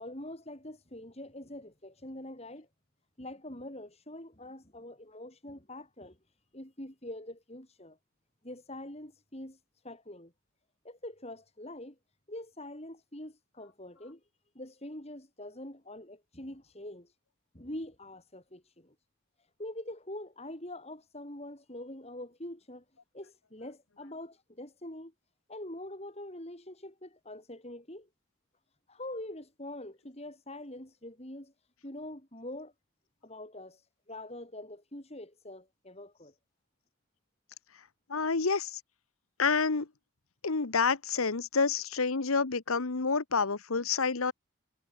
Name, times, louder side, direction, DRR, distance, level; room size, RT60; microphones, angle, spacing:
voice 1, 0.0-2.7 3.2-6.2 6.5-8.0 8.4-10.3 10.8-12.0 12.3-14.2 14.5-17.1 17.5-18.9 19.6-22.8 23.1-25.1 25.5-28.1 28.9-31.5 31.8-32.7 33.2-36.3, left 1 dB, 30° left, 4.8 m, -44 dB
voice 2, 38.1-38.8 39.4-39.9 40.4-44.3, left 4 dB, 80° left, 1.2 m, -28 dB
head